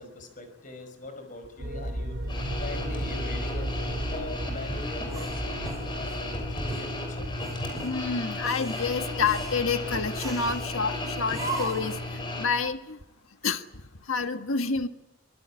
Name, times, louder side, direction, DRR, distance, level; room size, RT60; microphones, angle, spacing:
voice 1, 0.0-5.6 5.9-7.3, left 2 dB, 40° left, 8 dB, 5.3 m, -42 dB
sound 1, 1.6-6.7, right 1 dB, 60° right, 3.2 m, -34 dB
sound 2, 2.3-12.5, left 2 dB, 20° left, 6.0 m, -34 dB
sound 3, 5.1-6.2 6.7-6.9 7.4-7.9 8.4-8.9 9.2-9.6 10.1-10.6 11.3-11.9, right 2 dB, 15° right, 5.7 m, -37 dB
voice 2, 7.8-11.9 12.4-13.0 13.4-13.6 14.1-14.9, left 5 dB, 85° left, 7 dB, 1.6 m, -28 dB
25.5 x 17.5 x 9.9 m, 0.94 s
head